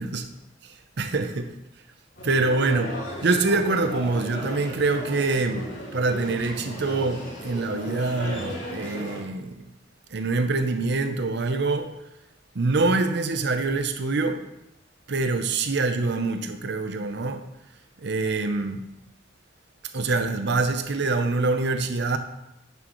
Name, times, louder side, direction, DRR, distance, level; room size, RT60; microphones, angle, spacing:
voice 1, 0.6-1.5 2.2-3.0 3.2-9.6 10.1-11.9 12.5-14.5 15.1-17.5 18.0-18.8 19.9-22.2, right 3 dB, 65° right, 0.7 m, -25 dB
sound 1, 2.2-9.2, equal, 80° left, 2.9 m, -35 dB
10.0 x 6.3 x 3.1 m
head